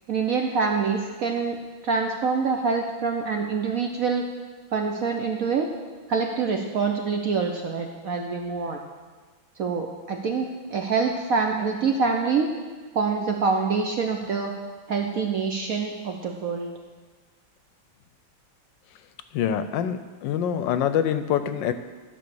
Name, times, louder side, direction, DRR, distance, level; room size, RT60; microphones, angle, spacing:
voice 1, 0.1-1.6 1.8-4.3 4.7-5.7 6.1-8.8 9.6-12.5 12.9-14.5 14.9-16.7, right 5 dB, 65° right, 3 dB, 0.9 m, -25 dB
voice 2, 19.3-21.7, left 9 dB, 75° left, 10 dB, 1.2 m, -25 dB
12.5 x 5.3 x 6.8 m, 1.4 s
omnidirectional pair, 2.2 m